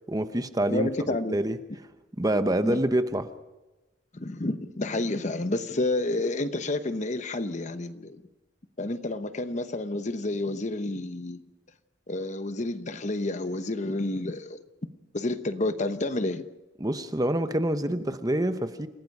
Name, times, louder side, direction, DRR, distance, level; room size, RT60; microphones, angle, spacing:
voice 1, 0.1-0.9 1.3-1.6 2.2-3.3 16.8-18.9, right 1 dB, 20° right, 10 dB, 0.9 m, -26 dB
voice 2, 0.7-1.4 2.6-2.8 4.1-8.2 8.8-11.4 12.1-14.6 15.1-16.4, left 2 dB, 40° left, 10 dB, 0.9 m, -30 dB
29.0 x 17.0 x 5.5 m, 1.1 s
head